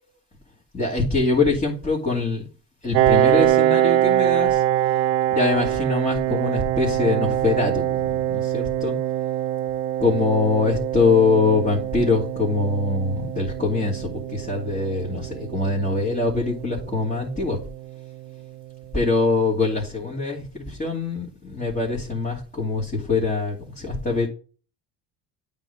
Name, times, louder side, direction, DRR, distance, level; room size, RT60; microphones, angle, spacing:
voice 1, 0.7-2.5 2.8-4.6 5.3-8.9 10.0-17.6 18.9-24.3, left 3 dB, 15° left, -5 dB, 2.7 m, -23 dB
Piano, 2.9-18.3, right 13 dB, 80° right, 0.8 m, -24 dB
8.8 x 3.7 x 5.4 m, 0.39 s
hypercardioid pair, 70°, 48 cm